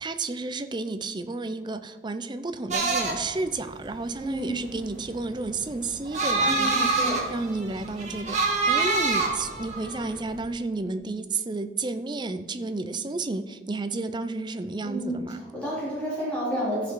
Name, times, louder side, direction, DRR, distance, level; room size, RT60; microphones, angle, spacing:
voice 1, 0.0-15.4, right 3 dB, 25° right, 10 dB, 0.5 m, -32 dB
sound 1, 2.7-10.4, right 3 dB, 40° right, 1.4 m, -26 dB
voice 2, 4.2-4.5 6.4-7.2 14.8-15.2 15.5-16.9, right 1 dB, 5° left, -9 dB, 3.7 m, -30 dB
14.5 x 6.0 x 4.6 m, 1.5 s
head